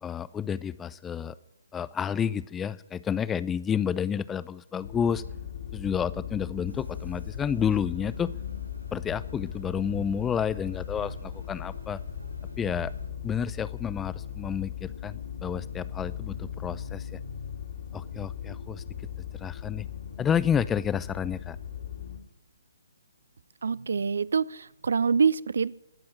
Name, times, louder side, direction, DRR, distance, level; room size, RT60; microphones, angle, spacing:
voice 1, 0.0-1.3 1.7-5.2 5.7-8.3 8.9-12.0 12.6-12.9 13.2-17.2 17.9-18.8 19.3-19.9 20.2-21.6, left 8 dB, 10° left, 17 dB, 0.5 m, -30 dB
sound 1, 4.8-22.2, left 9 dB, 50° left, 2.3 m, -38 dB
sound 2, 6.7-13.1, left 1 dB, 80° right, 1.9 m, -45 dB
voice 2, 23.6-25.7, right 5 dB, 55° right, 23 dB, 0.5 m, -25 dB
19.0 x 7.7 x 9.8 m, 0.94 s
figure-of-eight pair, 135°, 0 cm